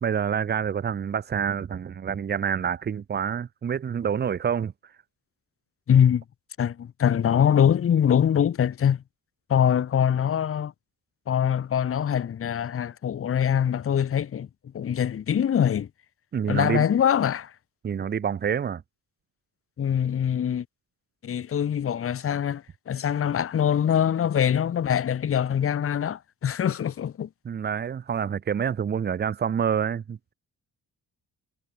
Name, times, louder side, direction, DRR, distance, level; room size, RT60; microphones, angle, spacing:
voice 1, 0.0-4.7 16.3-16.9 17.8-18.8 27.4-30.3, right 7 dB, 25° right, 0.4 m, -27 dB
voice 2, 5.9-6.2 6.6-9.0 9.5-10.7 11.3-14.5 14.7-15.9 16.5-17.5 19.8-20.6 21.2-27.3, left 9 dB, 35° left, 0.6 m, -23 dB
cardioid pair, 70°, 40 cm